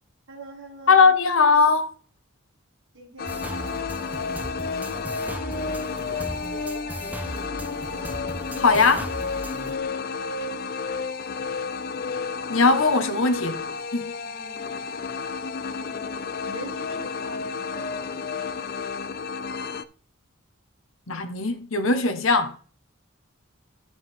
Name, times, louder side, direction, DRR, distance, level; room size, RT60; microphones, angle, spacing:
voice 1, 0.3-1.1 2.9-4.3 5.5-7.8 14.2-14.7 15.7-18.2, right 1 dB, 60° right, 2.2 m, -44 dB
voice 2, 0.9-1.9 8.6-9.1 12.5-13.6 13.9-14.1 21.1-22.5, left 4 dB, 70° left, 1.1 m, -19 dB
sound 1, 3.2-19.8, left 5 dB, 45° left, 0.5 m, -31 dB
sound 2, 3.3-9.8, right 1 dB, 10° right, 0.5 m, -37 dB
12.5 x 4.7 x 3.6 m
head